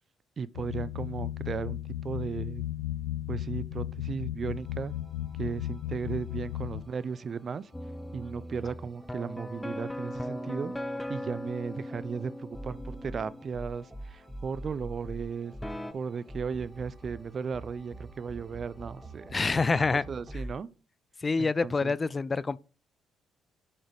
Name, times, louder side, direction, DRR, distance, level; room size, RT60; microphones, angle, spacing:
voice 1, 0.4-2.6 3.3-5.0 5.4-7.7 8.1-10.7 11.1-15.5 15.9-19.3 19.8-20.7 21.4-22.0, right 6 dB, 45° right, 0.6 m, -36 dB
sound 1, 0.5-6.8, left 13 dB, 75° left, 0.9 m, -35 dB
sound 2, 4.5-20.5, right 1 dB, 10° right, 3.7 m, -46 dB
sound 3, 7.7-13.4 15.6-15.9, left 1 dB, 10° left, 1.0 m, -38 dB
voice 2, 19.3-20.0 21.2-22.6, left 4 dB, 30° left, 0.5 m, -26 dB
8.8 x 6.4 x 4.8 m
hypercardioid pair, 45°, 0 cm